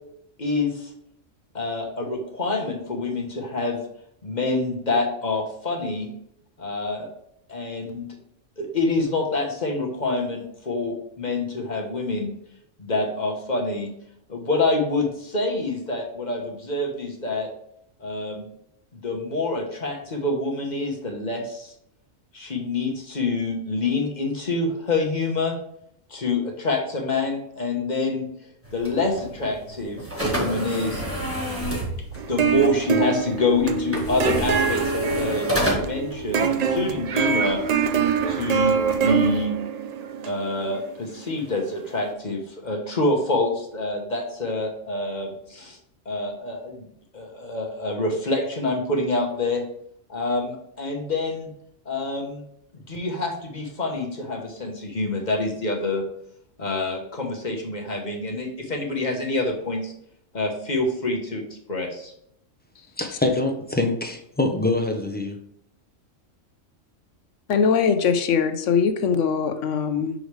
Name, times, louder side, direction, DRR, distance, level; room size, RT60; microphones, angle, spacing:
voice 1, 0.4-0.9 1.5-3.8 4.2-6.1 6.6-7.1 7.5-8.1 8.6-12.3 12.8-13.9 14.3-17.5 18.0-18.5 18.9-21.7 22.3-25.5 26.1-28.3 28.7-31.0 32.3-37.6 38.3-39.5 40.3-45.8 46.0-46.9 47.1-49.6 50.1-51.5 51.8-52.4 52.9-56.0 56.6-59.9 60.3-61.4 61.7-62.1, left 2 dB, 35° left, 1 dB, 1.2 m, -26 dB
sound 1, 28.6-39.4, right 1 dB, 10° right, 1.5 m, -31 dB
sound 2, 32.2-41.4, right 6 dB, 80° right, 0.3 m, -25 dB
voice 2, 63.0-65.4, left 2 dB, 10° left, 3 dB, 0.5 m, -24 dB
voice 3, 67.5-70.1, left 6 dB, 75° left, 9 dB, 1.0 m, -21 dB
6.3 x 5.1 x 3.2 m, 0.73 s
omnidirectional pair, 1.3 m